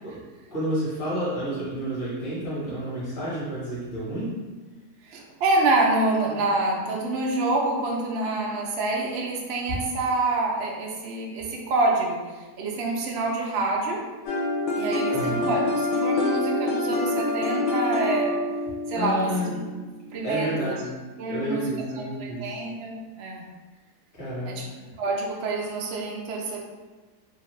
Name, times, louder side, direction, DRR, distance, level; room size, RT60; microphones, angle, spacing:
voice 1, 0.5-4.4 15.1-15.5 18.9-19.6 20.2-21.0 21.3-22.6 24.1-24.6, equal, 40° left, -8 dB, 1.0 m, -30 dB
voice 2, 5.0-14.0 14.7-18.3 18.9-19.6 20.1-20.7 21.2-21.6 22.0-23.4 24.5-24.6 25.0-26.6, right 2 dB, 75° right, -1 dB, 0.6 m, -27 dB
sound 1, 14.3-20.1, left 2 dB, 80° left, 1.1 m, -26 dB
2.8 x 2.4 x 3.0 m, 1.3 s
omnidirectional pair, 1.7 m